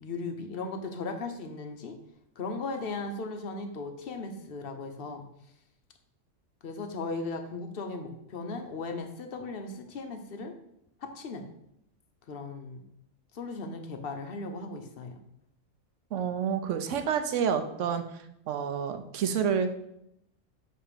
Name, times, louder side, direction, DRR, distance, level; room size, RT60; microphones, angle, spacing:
voice 1, 0.0-2.0 2.4-5.2 6.6-10.5 11.0-11.5 12.3-12.8 13.3-15.2, left 3 dB, 55° left, 5 dB, 0.8 m, -37 dB
voice 2, 16.1-18.0 18.5-19.8, right 7 dB, 70° right, 8 dB, 0.9 m, -28 dB
6.7 x 2.9 x 5.0 m, 0.78 s
omnidirectional pair, 1.4 m